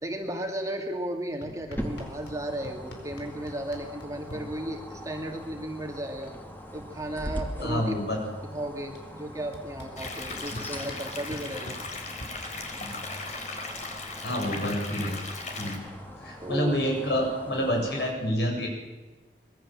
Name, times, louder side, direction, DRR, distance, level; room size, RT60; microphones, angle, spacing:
voice 1, 0.0-6.3 6.7-7.9 8.5-11.8 15.6-15.8 16.4-16.7, right 1 dB, 20° right, 2 dB, 2.4 m, -35 dB
sound 1, 1.4-2.4 2.6-4.4 5.7-5.8 6.0-6.4 6.7-8.1 9.0-9.1 9.5-12.3, left 1 dB, 85° left, 4.9 m, -44 dB
sound 2, 1.8-18.1, equal, 10° left, 2.8 m, -42 dB
voice 2, 7.6-8.2 10.5-10.6 12.8-13.1 14.2-15.2 15.6-15.8 16.2-18.7, equal, 70° left, 1 dB, 7.4 m, -28 dB
sound 3, 10.0-15.8, left 3 dB, 40° left, 4.3 m, -38 dB
25.5 x 21.5 x 7.6 m, 1.2 s
head